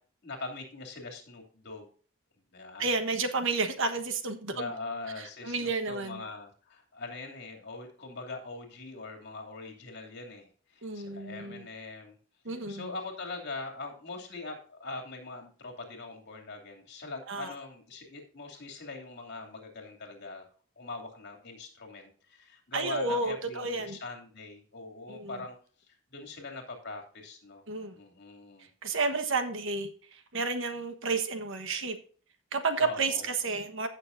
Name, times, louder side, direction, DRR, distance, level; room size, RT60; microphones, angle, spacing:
voice 1, 0.2-1.9 2.5-2.9 4.5-12.2 12.5-20.5 20.8-25.5 25.9-27.6 27.9-28.7 32.8-33.3, left 3 dB, 55° left, 3 dB, 2.8 m, -42 dB
voice 2, 2.8-4.7 5.2-6.2 10.8-11.7 12.4-12.9 17.3-17.5 22.7-24.0 25.1-25.4 27.7-28.0 28.8-32.0 32.5-33.9, right 3 dB, 65° right, 8 dB, 1.3 m, -31 dB
15.5 x 6.7 x 2.6 m, 0.43 s
head